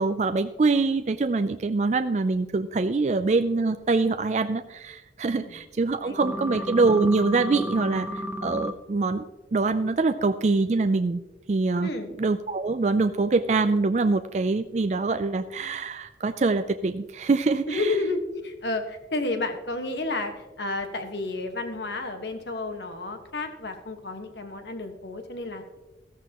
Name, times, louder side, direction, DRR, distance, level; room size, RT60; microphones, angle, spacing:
voice 1, 0.0-9.2 9.5-11.2 11.5-11.9 12.2-17.9, right 3 dB, 40° right, 9 dB, 0.4 m, -24 dB
sound 1, 6.2-8.7, equal, 10° right, 0.7 m, -32 dB
voice 2, 11.8-12.1 17.7-25.8, left 2 dB, 75° left, 6 dB, 1.5 m, -31 dB
14.0 x 13.5 x 3.0 m, 1.1 s
head